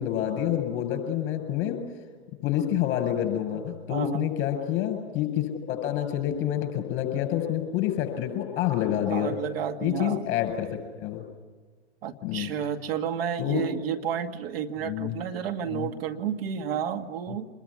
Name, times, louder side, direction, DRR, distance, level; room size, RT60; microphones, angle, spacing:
voice 1, 0.0-1.8 2.4-9.3 9.8-10.7 11.0-11.2 12.2-12.5 13.4-13.6 14.8-15.1 15.7-15.9, left 11 dB, 35° left, 6 dB, 7.5 m, -28 dB
voice 2, 3.9-4.3 9.1-10.3 12.0-17.5, right 8 dB, 55° right, 6 dB, 2.1 m, -31 dB
26.5 x 21.5 x 9.9 m, 1.5 s
hypercardioid pair, 110°, 35 cm